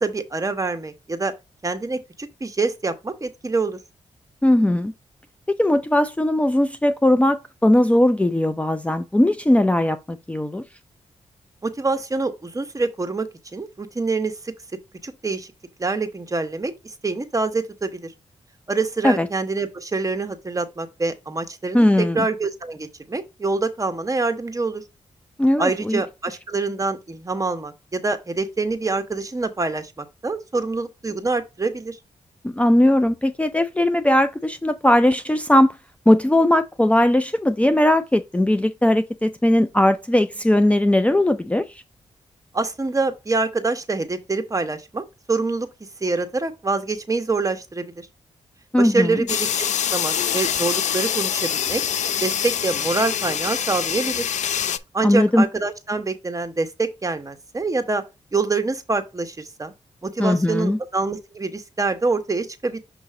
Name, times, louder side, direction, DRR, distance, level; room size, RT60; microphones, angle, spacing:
voice 1, 0.0-1.3 1.6-3.8 11.6-14.5 15.0-15.5 15.8-18.1 18.7-24.8 25.6-32.0 42.5-45.7 46.0-48.1 48.8-51.8 52.2-54.3 54.9-58.0 58.3-59.7 60.0-62.8, right 3 dB, 25° right, 1.2 m, -25 dB
voice 2, 4.4-4.9 5.6-10.6 19.0-19.3 21.7-22.3 25.4-26.0 32.5-35.8 36.1-41.8 48.7-49.2 55.0-55.4 60.2-60.8, left 1 dB, 10° left, 0.5 m, -19 dB
sound 1, 49.3-54.8, left 9 dB, 80° left, 0.5 m, -25 dB
6.6 x 3.0 x 4.9 m
cardioid pair, 65°, 12 cm